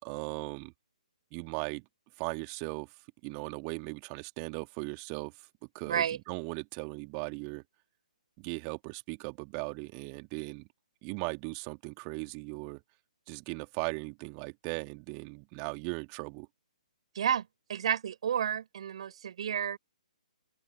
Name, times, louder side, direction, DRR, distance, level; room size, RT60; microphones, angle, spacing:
voice 1, 0.0-0.7 1.3-1.9 2.2-3.0 3.2-5.5 5.7-7.6 8.4-10.7 11.0-12.8 13.3-16.5, right 40 dB or more, 25° right, 2.9 m, -38 dB
voice 2, 5.9-6.2 17.1-19.8, right 9 dB, 50° right, 5.7 m, -31 dB
open air
figure-of-eight pair, 130°, 4 cm